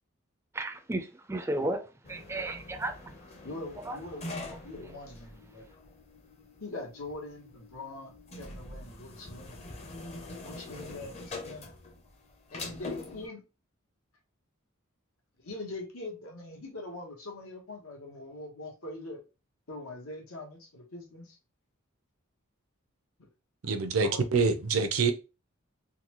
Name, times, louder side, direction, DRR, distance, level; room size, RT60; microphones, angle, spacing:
voice 1, 0.5-1.8 2.1-2.9 3.9-4.0, right 1 dB, 10° right, 0.4 m, -33 dB
sound 1, 2.0-13.3, left 2 dB, 30° left, 0.6 m, -44 dB
voice 2, 3.4-5.7 6.6-9.7 10.4-11.8 12.5-13.4 15.4-19.2 19.7-21.4 23.2-23.3 24.0-24.2, left 2 dB, 90° left, 1.2 m, -43 dB
voice 3, 23.6-25.1, right 4 dB, 80° right, 0.6 m, -26 dB
3.8 x 2.2 x 3.0 m
head